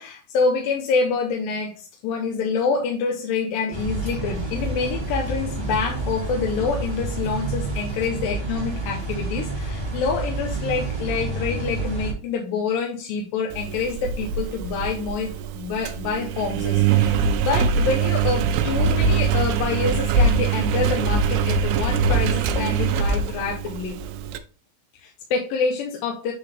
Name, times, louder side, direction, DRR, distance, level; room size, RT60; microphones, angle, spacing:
voice 1, 0.0-24.0 24.9-26.3, left 5 dB, 75° left, 1 dB, 2.5 m, -27 dB
sound 1, 3.7-12.1, right 2 dB, 20° right, 1.5 m, -29 dB
Engine, 13.5-24.4, right 5 dB, 80° right, 2.6 m, -23 dB
9.1 x 3.8 x 3.5 m, 0.36 s
omnidirectional pair, 4.5 m